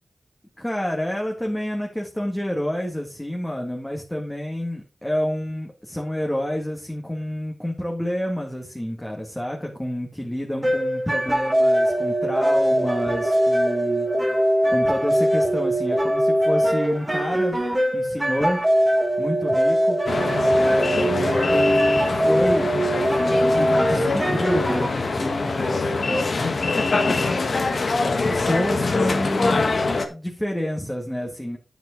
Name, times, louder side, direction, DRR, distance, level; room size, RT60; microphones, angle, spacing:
voice 1, 0.6-14.1 14.7-17.6 17.9-18.6 19.2-20.0 20.5-22.7 23.6-27.3 28.2-29.7 30.1-31.6, equal, 10° left, 0 dB, 2.1 m, -29 dB
sound 1, 10.6-24.9, equal, 15° right, 2.0 m, -21 dB
sound 2, 20.1-30.1, left 3 dB, 60° left, 1.5 m, -24 dB
9.2 x 7.7 x 3.9 m, 0.32 s
wide cardioid pair, 70°, 0 cm